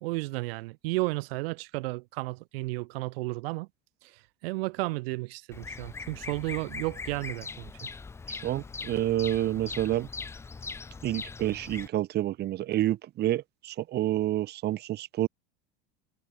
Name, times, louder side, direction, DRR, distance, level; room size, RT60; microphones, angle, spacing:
voice 1, 0.0-3.7 4.0-7.9, right 23 dB, 80° right, 0.9 m, -33 dB
Bird vocalization bird call bird song, 5.5-11.9, left 4 dB, 10° left, 0.5 m, -41 dB
voice 2, 8.3-10.1 11.0-15.3, right 14 dB, 35° right, 1.2 m, -29 dB
supercardioid pair, 150°, 29 cm